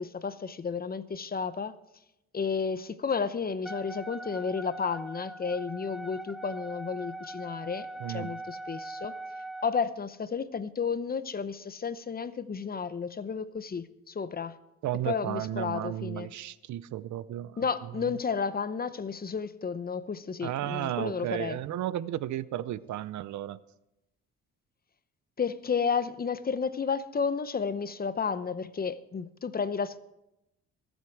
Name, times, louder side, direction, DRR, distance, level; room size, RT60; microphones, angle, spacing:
voice 1, 0.0-1.8 2.3-9.1 9.6-14.6 15.1-16.3 17.6-21.6 25.4-30.0, left 5 dB, 30° left, 0.8 m, -32 dB
Wind instrument woodwind instrument, 3.6-9.7, right 1 dB, ahead, 0.6 m, -41 dB
voice 2, 8.0-8.3 14.8-17.6 18.0-18.1 20.4-23.6, right 12 dB, 70° right, 0.6 m, -33 dB
22.5 x 8.1 x 4.7 m
cardioid pair, 90°, 30 cm